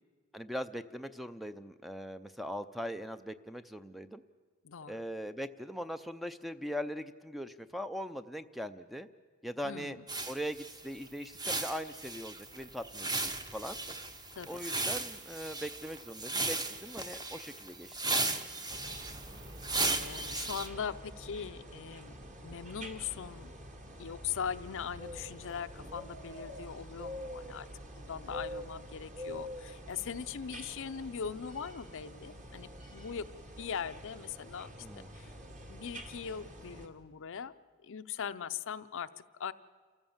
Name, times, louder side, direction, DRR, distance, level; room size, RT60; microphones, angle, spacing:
voice 1, 0.3-4.2 4.9-9.1 9.4-10.0 10.3-13.8 14.5-18.6 34.8-35.1, equal, ahead, 11 dB, 0.5 m, -41 dB
voice 2, 4.6-5.0 9.6-10.0 14.3-14.6 20.0-22.1 22.4-23.5 24.0-27.7 28.0-33.3 33.6-34.7 35.1-35.3 35.7-37.5 37.8-39.1 39.4-39.5, left 7 dB, 60° left, 12 dB, 0.6 m, -40 dB
sound 1, 10.1-20.7, right 2 dB, 20° right, 1.0 m, -36 dB
sound 2, 18.7-36.9, equal, 35° right, 1.8 m, -47 dB
28.0 x 14.5 x 7.2 m, 1.5 s
head